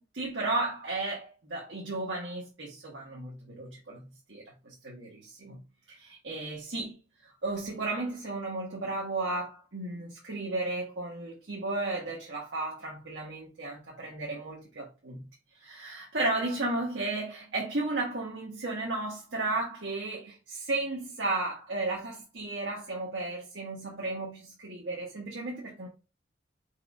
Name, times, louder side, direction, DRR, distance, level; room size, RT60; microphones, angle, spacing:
voice 1, 0.0-5.6 5.9-7.0 7.4-15.3 15.6-25.9, right 2 dB, 80° right, 1.4 m, -34 dB
4.6 x 4.6 x 2.5 m
head